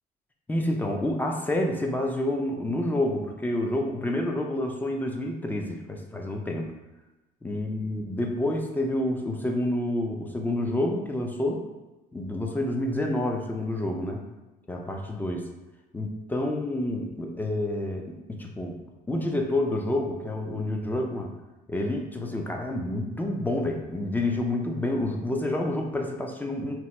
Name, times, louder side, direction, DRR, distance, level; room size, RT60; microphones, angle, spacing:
voice 1, 0.5-6.7 7.4-11.6 12.1-14.3 14.7-15.5 15.9-18.8 19.1-21.3 21.7-26.7, left 1 dB, 10° left, 2 dB, 0.4 m, -28 dB
2.9 x 2.2 x 3.1 m, 1.1 s
cardioid pair, 110°, 17 cm